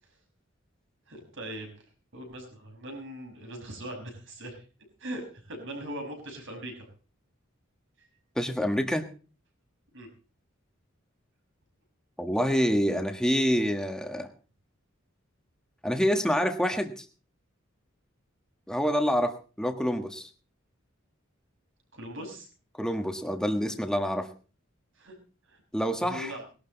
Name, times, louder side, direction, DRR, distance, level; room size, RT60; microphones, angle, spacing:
voice 1, 1.1-1.7 2.1-4.6 5.0-6.9 8.0-8.1 9.9-10.1 21.9-22.5 25.0-25.2 25.5-25.6 26.0-26.4, right 1 dB, 65° right, 3 dB, 5.9 m, -40 dB
voice 2, 8.3-9.0 12.2-14.3 15.8-17.0 18.7-20.3 22.8-24.3 25.7-26.3, equal, 5° left, 6 dB, 1.5 m, -27 dB
20.0 x 12.0 x 4.0 m, 0.37 s
head